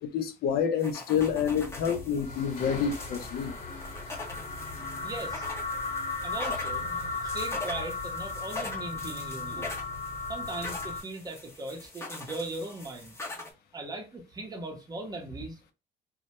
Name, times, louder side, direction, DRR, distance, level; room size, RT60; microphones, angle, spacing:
voice 1, 0.0-3.5, left 7 dB, 65° left, 0.5 m, -28 dB
sound 1, 0.8-13.5, left 2 dB, 15° left, 0.7 m, -42 dB
sound 2, 1.1-11.0, left 3 dB, 50° left, 1.1 m, -36 dB
voice 2, 5.0-5.5 6.2-9.7 10.3-13.2 13.7-15.7, right 2 dB, 20° right, 0.7 m, -39 dB
2.1 x 2.0 x 2.8 m
cardioid pair, 110°, 17 cm